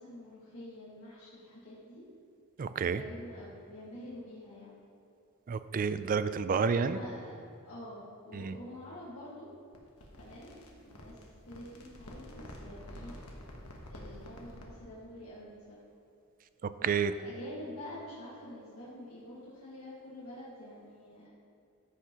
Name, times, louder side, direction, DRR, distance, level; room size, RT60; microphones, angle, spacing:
voice 1, 0.0-2.0 2.8-4.8 6.6-7.3 7.6-9.5 10.1-13.1 13.9-15.8 17.0-21.3, left 1 dB, 70° left, -8 dB, 1.7 m, -47 dB
voice 2, 2.6-3.0 5.5-7.0 8.3-8.5 16.6-17.1, right 5 dB, 40° right, 12 dB, 0.3 m, -30 dB
sound 1, 9.7-14.8, left 1 dB, 90° left, 1.2 m, -49 dB
14.0 x 5.8 x 3.0 m, 2.7 s
head